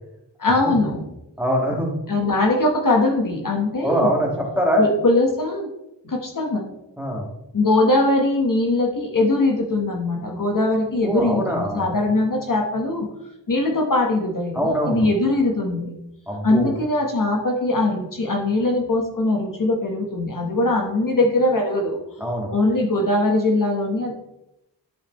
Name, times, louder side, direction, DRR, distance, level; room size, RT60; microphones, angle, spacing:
voice 1, 0.4-1.0 2.1-4.1 4.8-5.7 6.0-6.6 7.5-13.1 13.5-15.9 16.4-22.0 22.5-24.2, left 2 dB, 45° left, 1 dB, 1.3 m, -21 dB
voice 2, 1.4-1.9 3.8-4.9 7.0-7.3 11.0-11.9 14.5-15.1 16.3-16.7 22.2-22.5, equal, 5° right, -2 dB, 1.8 m, -23 dB
11.5 x 5.0 x 3.1 m, 0.88 s
wide cardioid pair, 100°, 43 cm